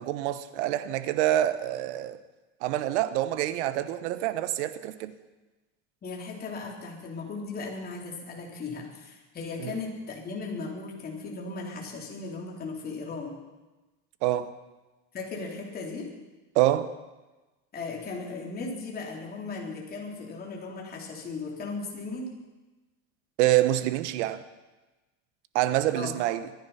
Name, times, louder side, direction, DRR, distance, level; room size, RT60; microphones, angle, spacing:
voice 1, 0.0-2.2 2.6-5.1 9.6-9.7 14.2-14.5 16.5-16.9 23.4-24.4 25.5-26.5, right 14 dB, 85° right, 1.2 m, -26 dB
voice 2, 6.0-13.3 15.1-16.1 17.7-22.3 25.9-26.1, left 3 dB, 25° left, 3.7 m, -37 dB
23.5 x 10.5 x 5.7 m
supercardioid pair, 135°, 34 cm